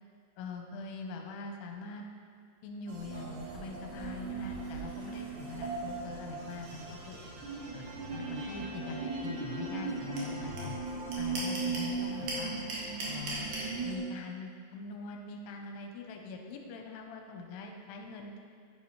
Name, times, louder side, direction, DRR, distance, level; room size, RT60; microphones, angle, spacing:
voice 1, 0.4-2.1 2.6-7.2 7.7-10.8 11.2-12.5 13.1-13.5 13.8-18.5, left 4 dB, 75° left, 2 dB, 2.7 m, -43 dB
sound 1, 2.9-14.0, right 4 dB, 75° right, 3.6 m, -38 dB
sound 2, 10.2-10.3 10.6-10.7 10.9-11.9 12.3-13.7, right 2 dB, 55° right, 2.8 m, -36 dB
10.0 x 10.0 x 3.2 m, 2.2 s
omnidirectional pair, 5.0 m